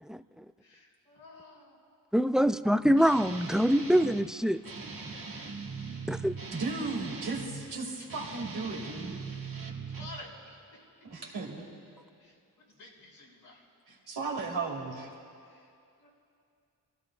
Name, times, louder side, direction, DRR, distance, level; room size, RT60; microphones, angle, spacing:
voice 1, 0.0-0.4 2.1-4.6 6.1-6.3, equal, ahead, 12 dB, 0.3 m, -25 dB
voice 2, 0.6-1.8 8.0-8.1 9.9-10.8 12.2-14.1 15.4-15.7 16.0-16.1, left 2 dB, 85° left, -5 dB, 4.1 m, -51 dB
Guitar, 2.9-4.3 4.6-7.6 8.0-10.2, right 4 dB, 60° right, 2.0 m, -40 dB
voice 3, 6.5-9.2 11.0-11.6 13.9-15.1, right 3 dB, 75° right, -2 dB, 2.6 m, -35 dB
26.0 x 15.5 x 2.5 m, 2.4 s
cardioid pair, 60°, 39 cm